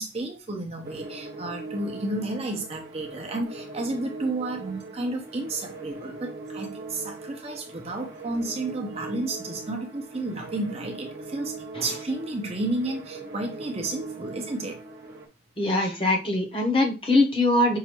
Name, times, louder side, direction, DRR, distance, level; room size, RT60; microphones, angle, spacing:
voice 1, 0.0-14.8, right 2 dB, 35° right, 0.8 m, -32 dB
sound 1, 0.8-15.3, right 3 dB, 55° right, 1.1 m, -40 dB
voice 2, 15.6-17.8, left 2 dB, 30° left, 0.9 m, -22 dB
5.6 x 2.6 x 2.9 m
head